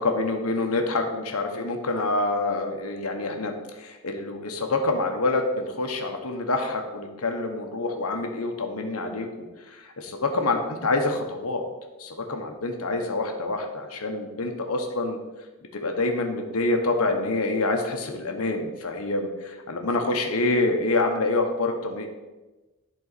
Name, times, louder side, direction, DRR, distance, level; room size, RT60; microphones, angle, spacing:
voice 1, 0.0-11.6 12.0-15.2 15.7-22.1, left 2 dB, 80° left, 4 dB, 1.0 m, -27 dB
11.0 x 4.1 x 4.1 m, 1.1 s
head